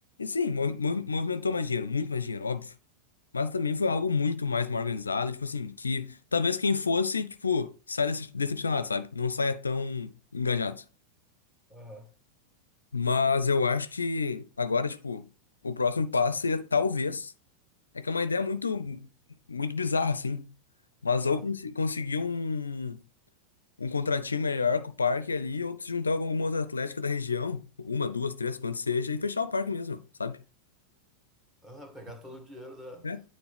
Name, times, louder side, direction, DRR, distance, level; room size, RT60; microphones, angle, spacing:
voice 1, 0.2-2.7 3.3-10.8 12.9-15.3 15.6-17.3 17.9-19.1 19.5-20.5 21.0-23.0 23.8-30.4 33.0-33.2, left 4 dB, 75° left, 0.4 m, -29 dB
voice 2, 11.7-12.1 21.2-21.5 31.6-33.1, equal, 10° right, 1.6 m, -45 dB
9.1 x 4.1 x 3.4 m
figure-of-eight pair, 90°, 0 cm